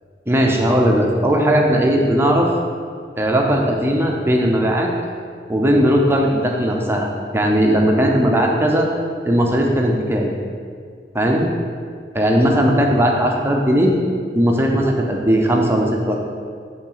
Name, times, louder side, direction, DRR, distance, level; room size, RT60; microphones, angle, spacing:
voice 1, 0.3-2.5 3.2-4.9 5.5-7.1 7.3-8.9 9.3-10.3 11.1-11.5 12.1-13.9 14.3-16.2, equal, 15° right, 0 dB, 0.6 m, -17 dB
5.4 x 3.9 x 5.6 m, 2.1 s
head